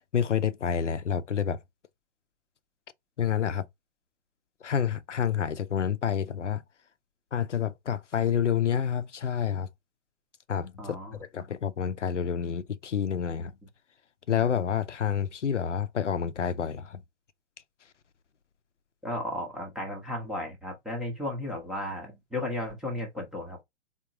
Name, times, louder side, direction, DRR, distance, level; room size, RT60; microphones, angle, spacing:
voice 1, 0.1-1.6 3.2-3.6 4.6-6.6 7.3-9.7 10.5-11.0 11.3-13.5 14.3-17.0, left 8 dB, 85° left, 0.6 m, -28 dB
voice 2, 10.8-11.1 19.0-23.6, left 1 dB, ahead, 0.5 m, -34 dB
3.6 x 2.8 x 2.8 m
figure-of-eight pair, 130°, 35 cm